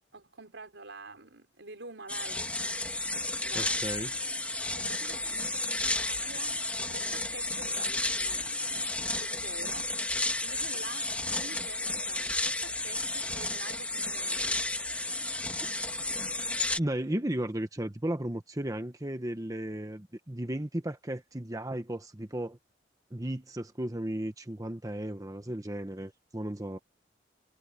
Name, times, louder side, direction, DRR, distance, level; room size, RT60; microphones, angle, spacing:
voice 1, 0.1-2.5 3.4-3.8 4.6-6.6 6.9-9.9 10.2-14.8, right 3 dB, 80° right, 4.4 m, -48 dB
sound 1, 2.1-16.8, left 2 dB, 5° left, 1.7 m, -32 dB
voice 2, 3.5-4.1 16.8-22.6 23.1-26.8, right 1 dB, 20° right, 1.1 m, -35 dB
head